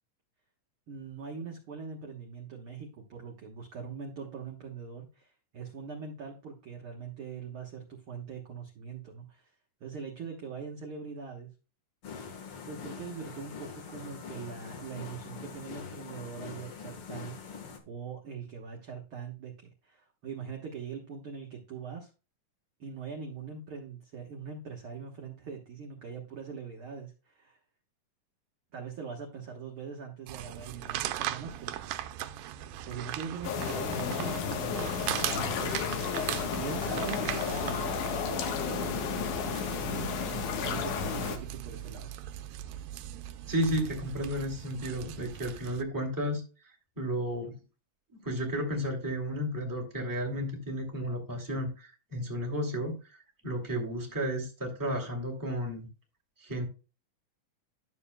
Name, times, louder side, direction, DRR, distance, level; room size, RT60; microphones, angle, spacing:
voice 1, 0.9-9.5 9.8-11.5 12.7-22.1 22.8-27.6 28.7-31.9 32.8-35.8 36.5-42.1, right 6 dB, 55° right, 0 dB, 1.7 m, -42 dB
sound 1, 12.0-17.8, left 6 dB, 55° left, 1.9 m, -44 dB
sound 2, 30.3-45.8, right 12 dB, 85° right, 2.2 m, -39 dB
sound 3, 33.4-41.4, left 7 dB, 75° left, 2.6 m, -32 dB
voice 2, 43.4-46.4 47.0-47.6 48.2-53.2 53.4-55.9 56.4-56.7, equal, 5° right, 0 dB, 2.0 m, -33 dB
12.0 x 6.9 x 2.2 m, 0.31 s
omnidirectional pair, 3.7 m